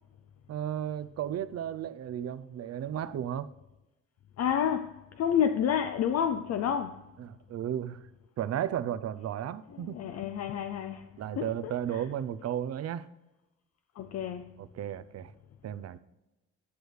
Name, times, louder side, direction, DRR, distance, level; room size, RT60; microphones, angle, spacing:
voice 1, 0.5-3.5 7.2-8.0 8.4-10.0 11.2-13.1 14.6-15.3 15.6-16.0, right 10 dB, 55° right, 0.6 m, -34 dB
voice 2, 4.4-7.1 9.7-11.1 11.4-12.0 14.0-14.6, left 8 dB, 55° left, 0.5 m, -30 dB
11.0 x 6.2 x 3.4 m
cardioid pair, 90°, 30 cm